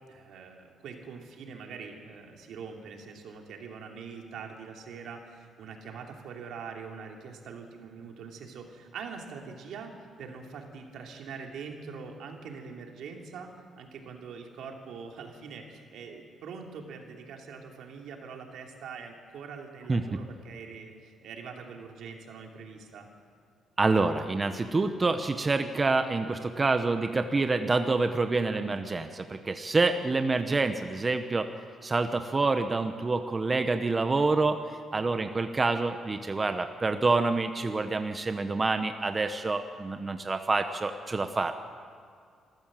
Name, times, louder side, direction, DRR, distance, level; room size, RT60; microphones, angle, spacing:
voice 1, 0.1-9.9 10.2-23.1, right 5 dB, 75° right, 2 dB, 2.9 m, -43 dB
voice 2, 23.8-31.5 31.8-41.6, right 3 dB, 30° right, 8 dB, 1.0 m, -27 dB
26.5 x 14.5 x 7.6 m, 2.2 s
cardioid pair, 90°, 0 cm